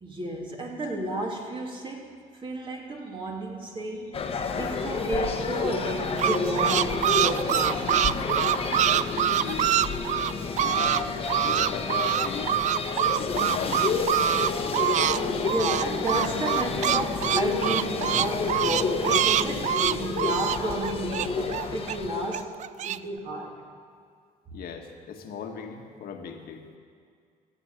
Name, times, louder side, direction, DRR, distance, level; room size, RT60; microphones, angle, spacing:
voice 1, 0.0-2.1 2.4-8.0 8.7-8.9 15.5-22.5 22.8-23.6, right 1 dB, 30° right, 0 dB, 2.4 m, -32 dB
sound 1, 4.1-22.4, left 4 dB, 35° left, 1.4 m, -30 dB
sound 2, 5.8-11.0 11.3-15.2 15.4-21.9 22.3-23.0, right 11 dB, 45° right, 0.4 m, -25 dB
voice 2, 8.7-9.8 10.6-11.0 11.4-12.6 13.1-13.9 24.5-26.7, left 7 dB, 65° left, 3 dB, 1.7 m, -37 dB
14.5 x 7.5 x 9.3 m, 2.2 s
cardioid pair, 110°, 17 cm